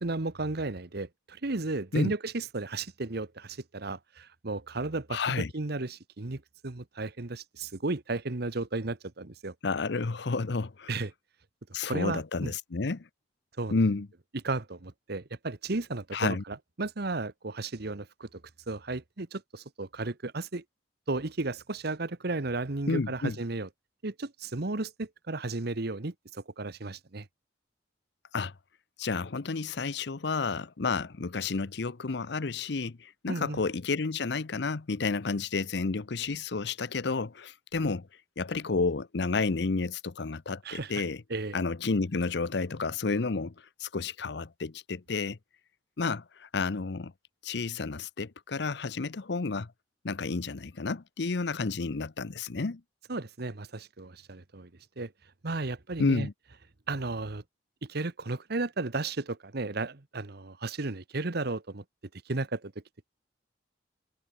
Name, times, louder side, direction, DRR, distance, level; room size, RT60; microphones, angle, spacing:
voice 1, 0.0-9.5 10.9-11.1 11.8-12.5 13.6-13.7 14.4-18.4 18.7-20.6 21.1-23.7 24.0-27.3 33.3-33.6 40.6-40.9 41.3-41.6 53.1-54.7 55.0-55.1 55.4-56.3 56.9-57.4 57.8-61.8 62.3-62.7, right 2 dB, 60° right, 1.2 m, -34 dB
voice 2, 5.1-5.5 9.6-10.9 11.7-13.1 13.7-14.1 16.1-16.4 22.9-23.4 28.3-28.5 29.0-38.1 38.4-41.2 41.5-43.5 43.8-45.4 46.0-47.1 47.4-49.7 50.0-52.8 56.0-56.3, left 4 dB, 65° left, 0.8 m, -31 dB
head